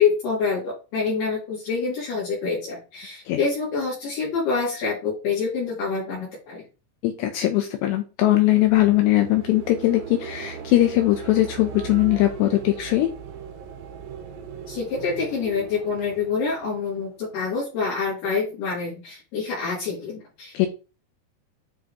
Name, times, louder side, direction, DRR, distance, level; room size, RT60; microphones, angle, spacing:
voice 1, 0.0-6.6 14.7-20.7, left 5 dB, 55° left, -6 dB, 4.3 m, -26 dB
voice 2, 7.0-13.1 20.5-20.7, left 15 dB, 80° left, 5 dB, 2.5 m, -20 dB
sound 1, 8.5-17.5, right 8 dB, 85° right, 4.4 m, -39 dB
9.8 x 5.9 x 3.0 m, 0.33 s
omnidirectional pair, 6.0 m